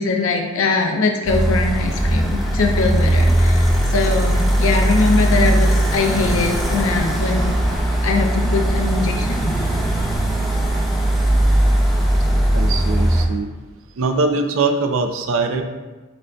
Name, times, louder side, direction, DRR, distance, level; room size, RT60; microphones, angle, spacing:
voice 1, 0.0-7.6 8.0-9.5, left 3 dB, 80° left, 2 dB, 0.6 m, -21 dB
sound 1, 1.3-13.3, right 1 dB, ahead, 0.5 m, -18 dB
voice 2, 12.5-13.5 14.0-15.6, right 3 dB, 70° right, 5 dB, 0.4 m, -21 dB
7.9 x 2.7 x 2.2 m, 1.2 s
head